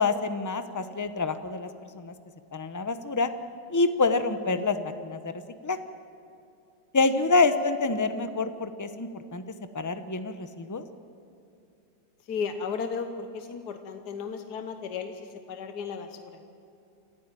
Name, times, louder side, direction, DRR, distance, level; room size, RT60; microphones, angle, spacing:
voice 1, 0.0-1.7 2.0-2.1 2.5-3.3 3.7-5.3 5.6-5.8 6.9-9.4 9.7-10.8, left 3 dB, 15° left, 10 dB, 0.6 m, -26 dB
voice 2, 12.3-16.4, left 6 dB, 70° left, 7 dB, 1.7 m, -35 dB
27.5 x 14.5 x 9.2 m, 2.7 s
omnidirectional pair, 1.8 m